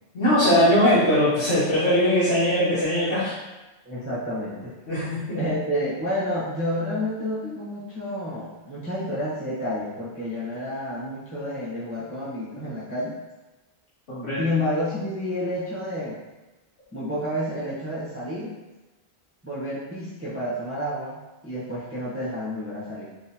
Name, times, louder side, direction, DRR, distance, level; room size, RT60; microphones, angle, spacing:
voice 1, 0.1-3.3 4.9-5.4 14.1-14.5, left 1 dB, 70° left, -10 dB, 1.3 m, -21 dB
voice 2, 3.8-4.7 5.3-13.2 14.4-16.2 16.9-18.6 19.4-23.1, left 1 dB, 15° right, -9 dB, 0.7 m, -30 dB
3.6 x 2.7 x 2.7 m, 1.1 s
omnidirectional pair, 1.2 m